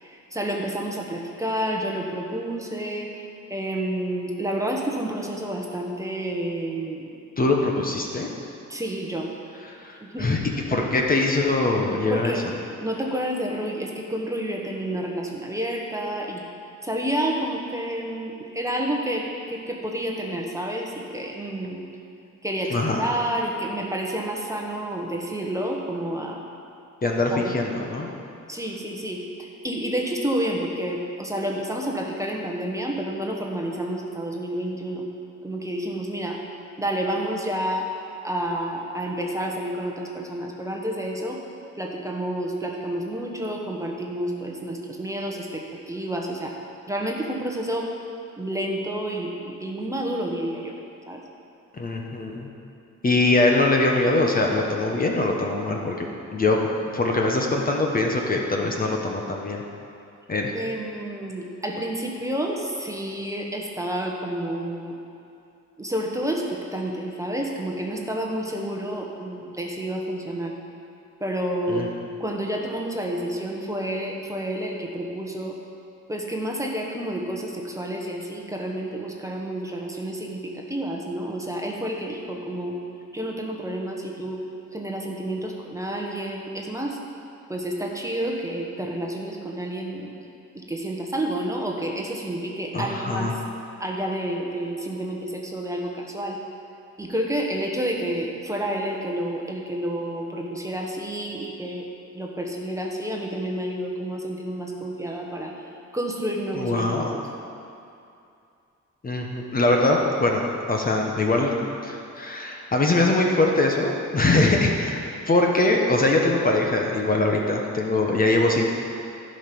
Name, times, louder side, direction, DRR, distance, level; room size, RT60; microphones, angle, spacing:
voice 1, 0.0-3.1 3.5-7.2 8.7-9.3 10.0-10.3 10.7-10.9 12.1-12.4 12.8-16.4 16.8-21.8 22.4-26.4 27.3-27.5 28.5-35.1 35.4-36.4 36.8-37.9 38.2-41.4 41.7-46.5 46.9-47.9 48.4-50.7 51.1-51.2 60.5-64.9 65.8-70.5 71.2-71.8 72.2-75.5 76.1-82.8 83.1-84.4 84.7-87.0 87.5-90.1 90.5-93.4 93.8-96.4 97.0-101.9 102.1-105.5 105.9-107.2, right 1 dB, 10° right, 0 dB, 1.1 m, -29 dB
voice 2, 7.4-8.3 9.8-10.4 10.7-12.3 22.7-23.0 27.0-28.1 51.7-52.5 53.0-56.1 56.3-56.6 56.9-59.6 60.3-60.5 71.7-71.9 92.7-93.3 106.5-107.1 109.0-111.5 111.8-115.0 115.3-118.6, left 2 dB, 30° left, 1 dB, 1.0 m, -22 dB
15.0 x 5.3 x 6.0 m, 2.6 s
cardioid pair, 120°, 30 cm